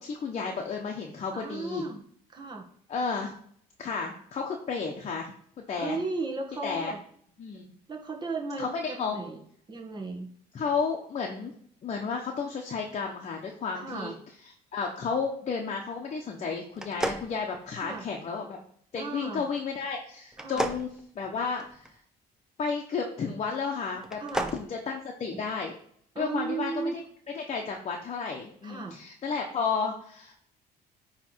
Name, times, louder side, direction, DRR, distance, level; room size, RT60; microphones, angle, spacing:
voice 1, 0.0-1.9 2.9-3.3 3.8-5.3 5.7-6.0 6.6-7.0 7.4-7.7 8.6-9.2 10.5-11.5 11.8-14.1 14.7-18.6 18.9-20.9 21.1-21.9 22.6-24.2 24.5-25.7 26.2-27.0 27.3-30.4, left 5 dB, 40° left, 1 dB, 1.1 m, -32 dB
voice 2, 1.3-2.0 2.3-2.6 5.8-7.0 7.9-9.4 9.7-10.3 13.7-14.2 17.8-18.0 18.9-19.4 20.4-20.6 24.2-24.5 25.3-25.5 26.2-27.0 28.6-29.0, right 3 dB, 25° right, 1 dB, 1.7 m, -35 dB
sound 1, 16.7-18.1 20.3-21.9 24.0-24.6, right 1 dB, 5° right, 0.7 m, -33 dB
9.2 x 3.4 x 4.6 m, 0.63 s
cardioid pair, 110°, 17 cm